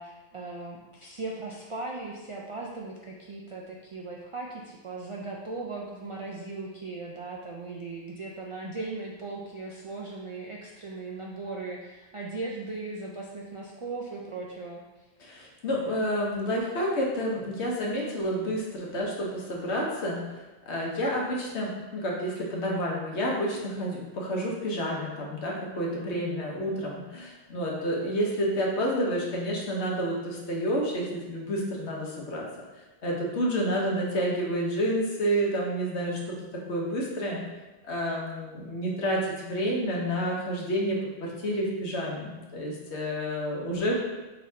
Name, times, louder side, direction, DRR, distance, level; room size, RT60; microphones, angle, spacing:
voice 1, 0.0-15.1, right 3 dB, 55° right, -3 dB, 0.3 m, -38 dB
voice 2, 15.2-32.4 33.0-36.2 36.7-37.4 37.8-44.0, equal, 85° left, -2 dB, 1.3 m, -29 dB
4.8 x 4.0 x 2.7 m, 1.1 s
omnidirectional pair, 1.1 m